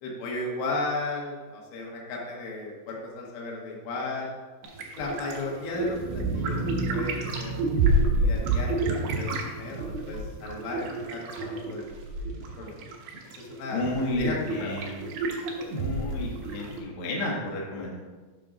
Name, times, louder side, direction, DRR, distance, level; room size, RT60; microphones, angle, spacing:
voice 1, 0.0-4.3 5.0-6.6 6.9-12.0 12.2-12.8 13.2-14.8, left 2 dB, 85° left, -2 dB, 3.7 m, -35 dB
sound 1, 4.6-16.8, right 2 dB, 70° right, 2.8 m, -29 dB
sound 2, 5.7-11.6, right 2 dB, 90° right, 2.9 m, -36 dB
voice 2, 13.7-15.0 15.7-18.0, left 1 dB, 65° left, -3 dB, 1.4 m, -32 dB
8.2 x 3.8 x 6.1 m, 1.4 s
omnidirectional pair, 5.0 m